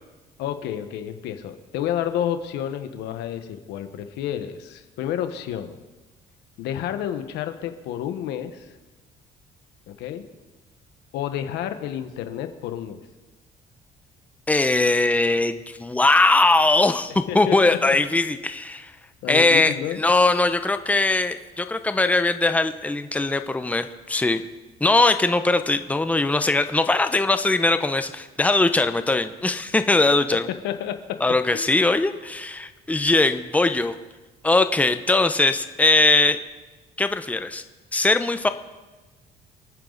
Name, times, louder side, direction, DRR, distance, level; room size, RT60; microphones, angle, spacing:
voice 1, 0.4-5.8 6.6-8.7 9.9-10.2 11.1-13.0 17.3-18.0 19.2-20.0 30.6-31.2 31.5-31.7, left 10 dB, 90° left, 8 dB, 1.3 m, -30 dB
voice 2, 14.5-18.9 19.3-24.4 24.8-30.5 31.2-34.0 34.4-36.4 37.0-37.6 37.9-38.5, left 2 dB, 10° left, 9 dB, 0.8 m, -20 dB
27.5 x 9.5 x 4.1 m, 1.2 s
cardioid pair, 110°, 17 cm